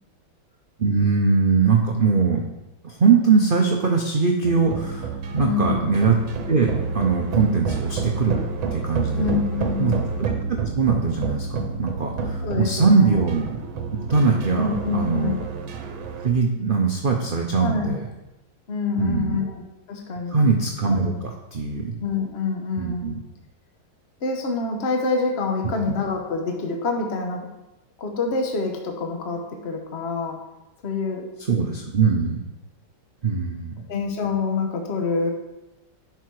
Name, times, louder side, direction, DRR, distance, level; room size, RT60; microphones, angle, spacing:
voice 1, 0.8-2.5 2.8-6.2 6.5-9.4 9.8-9.9 10.6-13.5 14.1-15.4 16.2-18.0 19.0-19.4 20.3-22.0 22.8-23.2 31.5-32.4 33.2-33.8, right 4 dB, 60° right, 1 dB, 0.5 m, -21 dB
sound 1, 4.4-16.3, right 5 dB, 85° right, 1.6 m, -29 dB
voice 2, 5.4-5.9 9.2-10.0 12.4-13.2 14.5-15.4 17.6-17.9 18.7-20.4 21.0-21.2 22.0-23.1 24.2-27.5 28.0-30.4 30.8-31.3 33.9-35.3, left 4 dB, 40° left, 3 dB, 1.1 m, -26 dB
10.5 x 4.6 x 4.7 m, 0.98 s
omnidirectional pair, 2.1 m